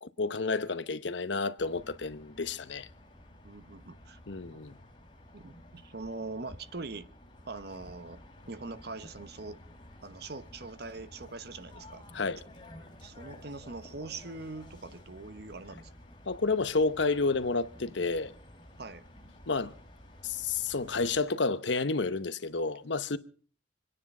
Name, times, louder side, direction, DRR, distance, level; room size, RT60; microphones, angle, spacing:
voice 1, 0.0-2.9 4.3-4.8 12.1-12.4 16.3-18.3 19.5-19.7 20.2-23.2, left 3 dB, 70° left, 0.9 m, -30 dB
sound 1, 1.6-21.2, left 1 dB, 25° left, 3.4 m, -52 dB
voice 2, 3.4-4.2 4.5-4.6 5.3-7.1 7.5-8.2 8.5-9.6 10.0-12.0 13.0-15.9 18.8-19.0, right 3 dB, 55° right, 1.0 m, -42 dB
26.0 x 10.0 x 5.4 m
head